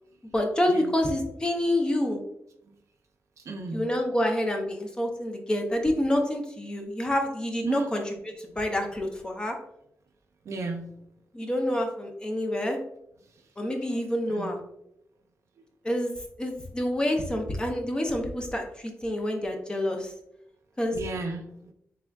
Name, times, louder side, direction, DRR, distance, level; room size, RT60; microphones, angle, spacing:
voice 1, 0.3-2.2 3.7-9.6 11.3-12.8 13.6-14.6 15.8-16.1 16.4-20.1 20.8-21.0, left 1 dB, 15° left, 3 dB, 0.5 m, -27 dB
voice 2, 3.4-3.8 7.6-7.9 10.4-10.9 13.4-13.5 13.9-14.0 14.3-14.6 20.9-21.7, right 3 dB, 70° right, 4 dB, 0.5 m, -34 dB
3.4 x 3.4 x 2.2 m, 0.76 s
wide cardioid pair, 175°, 5 cm